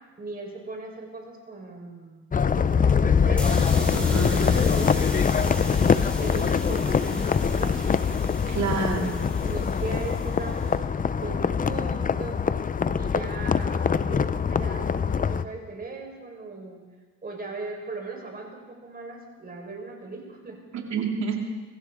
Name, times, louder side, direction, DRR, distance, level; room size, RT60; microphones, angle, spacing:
voice 1, 0.2-2.3 2.6-3.7 4.3-7.8 8.7-10.9 11.2-12.4 12.9-16.8 17.2-20.6, right 3 dB, 30° right, 1 dB, 4.5 m, -38 dB
sound 1, 2.3-15.5, left 6 dB, 30° left, 0.6 m, -23 dB
sound 2, 3.3-10.7, equal, 5° left, 4.9 m, -39 dB
voice 2, 3.9-4.6 8.5-9.2 20.7-21.5, right 5 dB, 65° right, 1 dB, 2.9 m, -29 dB
24.0 x 14.5 x 3.7 m, 1.3 s
cardioid pair, 90°, 30 cm